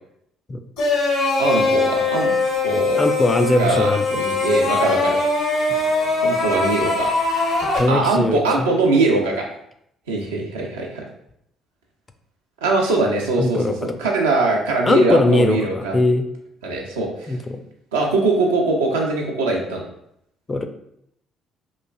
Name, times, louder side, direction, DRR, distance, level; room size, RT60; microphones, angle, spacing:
sound 1, 0.8-7.8, left 3 dB, 80° left, 0.9 m, -21 dB
voice 1, 1.4-2.4 2.6-3.0 3.6-5.2 6.2-7.1 7.9-9.5 10.1-11.0 12.6-16.0 16.6-17.4 17.9-19.8, right 3 dB, 85° right, 0 dB, 0.4 m, -21 dB
voice 2, 3.0-4.2 7.7-8.7 13.4-14.0 14.9-16.2 17.3-17.6 20.5-20.7, left 2 dB, 30° left, 7 dB, 0.3 m, -20 dB
3.0 x 2.4 x 2.3 m, 0.74 s
hypercardioid pair, 50°, 0 cm